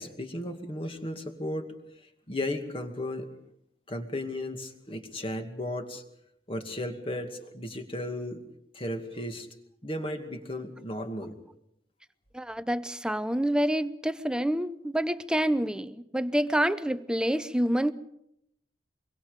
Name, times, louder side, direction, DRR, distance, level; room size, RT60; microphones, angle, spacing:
voice 1, 0.0-3.3 3.9-6.0 6.5-8.4 8.7-9.5 9.8-11.4, left 1 dB, 30° left, 2.3 m, -35 dB
voice 2, 12.3-17.9, right 1 dB, 5° right, 0.7 m, -27 dB
25.0 x 24.0 x 5.2 m
head